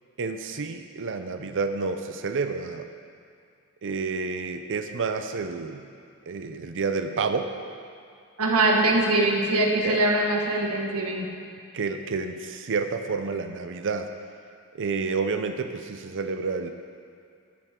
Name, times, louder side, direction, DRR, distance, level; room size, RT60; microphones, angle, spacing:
voice 1, 0.2-2.9 3.8-5.9 6.3-7.5 9.8-10.0 11.7-14.1 14.8-16.7, right 4 dB, 55° right, 7 dB, 0.6 m, -29 dB
voice 2, 8.4-11.3, right 2 dB, 75° right, -1 dB, 1.8 m, -22 dB
14.5 x 11.5 x 3.7 m, 2.3 s
head